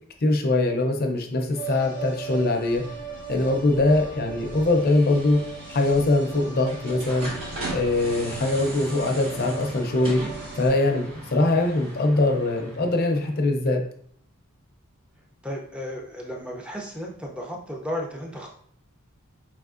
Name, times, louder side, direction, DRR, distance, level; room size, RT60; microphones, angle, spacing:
voice 1, 0.2-2.8 3.3-5.4 5.7-7.3 7.7-10.2 10.6-13.8, left 2 dB, 45° left, 4 dB, 0.5 m, -22 dB
sound 1, 1.5-10.7, right 6 dB, 50° right, 0.9 m, -39 dB
sound 2, 2.6-13.3, right 1 dB, 75° right, 1.3 m, -39 dB
voice 2, 15.4-18.5, equal, 5° right, 0 dB, 0.5 m, -34 dB
4.7 x 3.4 x 2.5 m, 0.63 s
head